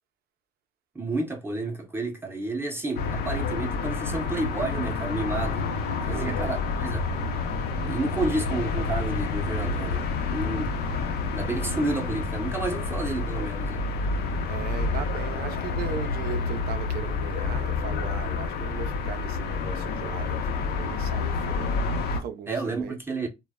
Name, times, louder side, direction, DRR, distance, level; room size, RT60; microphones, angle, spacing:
voice 1, 0.9-5.7 6.1-7.1 7.8-10.8 11.3-13.9 22.5-23.3, right 2 dB, 15° right, 0.6 m, -31 dB
sound 1, 3.0-22.2, left 4 dB, 70° left, 0.6 m, -29 dB
voice 2, 6.1-6.4 14.5-21.8 22.1-23.0, right 8 dB, 65° right, 0.4 m, -38 dB
2.1 x 2.0 x 3.4 m
cardioid pair, 110°, 17 cm